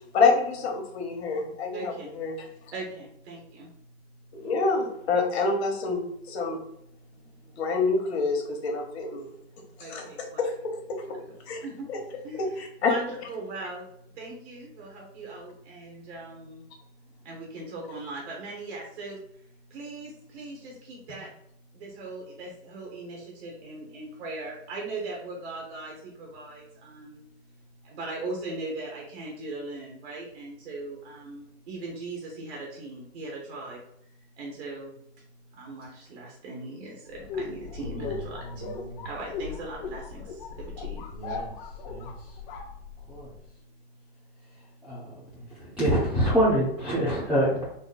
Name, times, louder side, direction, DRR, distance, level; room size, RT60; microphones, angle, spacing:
voice 1, 0.1-2.4 4.3-6.6 7.6-9.3 9.9-10.0 10.4-11.0 11.5-11.6 11.9-12.0 12.6-12.9, left 4 dB, 70° left, 2 dB, 1.4 m, -27 dB
voice 2, 1.7-2.1 2.7-3.7 9.8-10.4 11.1-11.2 11.6-11.9 12.2-13.9 14.2-16.7 17.2-19.2 19.7-21.3 21.7-27.2 27.8-33.8 34.4-35.0 35.5-38.7 39.0-41.1, right 2 dB, 80° right, -2 dB, 1.4 m, -39 dB
sound 1, 37.1-43.4, left 5 dB, 50° left, 1.0 m, -38 dB
voice 3, 41.1-41.5 41.9-42.1 43.1-43.3 44.8-45.0 45.6-47.7, equal, 5° right, -8 dB, 1.0 m, -25 dB
4.2 x 2.2 x 4.0 m, 0.77 s
supercardioid pair, 135°, 32 cm